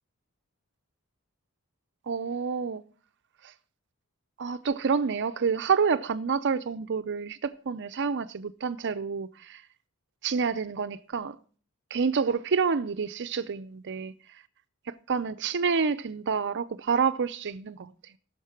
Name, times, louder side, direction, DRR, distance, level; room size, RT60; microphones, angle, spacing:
voice 1, 2.1-2.8 4.4-9.6 10.2-11.4 11.9-14.1 15.1-17.9, right 5 dB, 55° right, 0.6 m, -28 dB
17.0 x 6.6 x 5.8 m
head